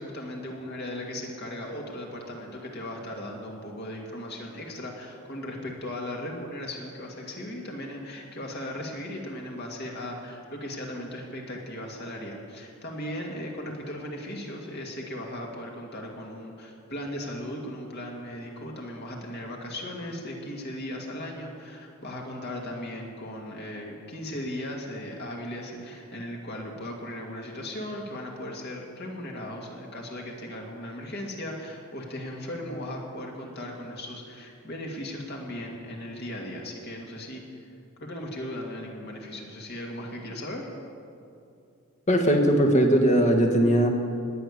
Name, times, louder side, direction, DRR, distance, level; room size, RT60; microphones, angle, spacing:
voice 1, 0.0-37.7 38.0-40.7, left 1 dB, 50° left, -1 dB, 2.4 m, -37 dB
voice 2, 42.1-43.9, right 1 dB, 35° left, 4 dB, 1.5 m, -20 dB
18.5 x 6.9 x 9.8 m, 2.5 s
head